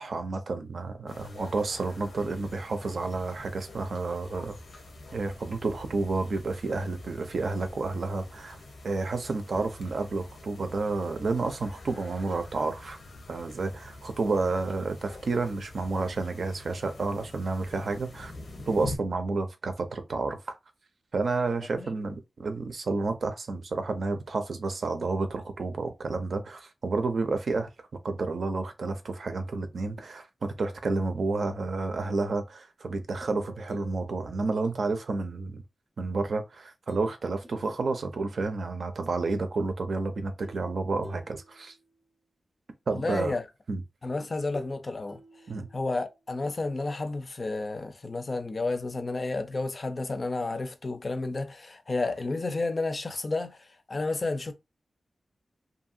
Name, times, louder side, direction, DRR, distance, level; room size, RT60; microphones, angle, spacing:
voice 1, 0.0-4.6 5.1-8.6 8.8-13.0 13.3-18.3 18.7-20.6 21.1-27.7 28.0-35.6 36.0-41.7 42.9-43.4 43.7-43.8 45.5-45.7, right 3 dB, 70° right, 0.5 m, -30 dB
sound 1, 1.1-19.0, left 2 dB, 85° left, 0.8 m, -46 dB
sound 2, 33.2-35.5 36.9-37.2 37.4-38.7 40.4-42.1 44.0-46.3, equal, 15° right, 0.6 m, -50 dB
voice 2, 42.9-43.4 44.0-45.2 45.7-54.5, left 3 dB, 40° left, 0.4 m, -31 dB
2.8 x 2.5 x 2.5 m
wide cardioid pair, 125°, 0 cm